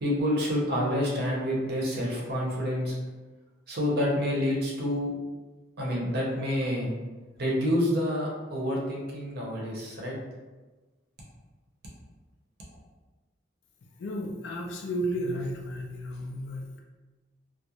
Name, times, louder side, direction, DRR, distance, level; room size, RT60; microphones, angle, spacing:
voice 1, 0.0-2.9 3.7-5.1 5.8-6.9 7.4-10.1, equal, 60° right, -3 dB, 0.7 m, -28 dB
voice 2, 14.0-16.8, equal, 75° left, 0 dB, 0.4 m, -33 dB
2.3 x 2.0 x 2.9 m, 1.2 s
head